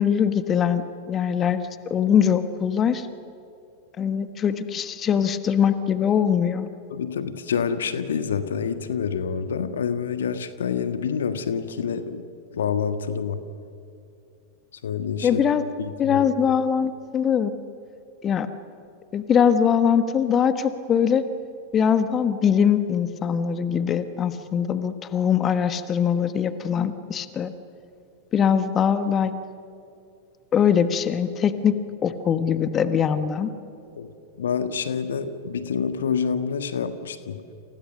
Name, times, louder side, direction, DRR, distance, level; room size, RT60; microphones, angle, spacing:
voice 1, 0.0-1.6 1.9-3.1 4.0-6.7 15.2-15.6 16.0-17.5 18.2-18.5 19.1-21.2 21.7-27.5 28.3-29.3 30.5-33.5, left 8 dB, 25° left, 11 dB, 1.3 m, -22 dB
voice 2, 6.9-12.3 12.5-13.4 14.7-15.4 15.8-16.3 33.9-34.1 34.4-37.5, left 6 dB, 65° left, 10 dB, 1.5 m, -27 dB
29.5 x 28.5 x 6.7 m, 2.6 s
figure-of-eight pair, 90°, 0 cm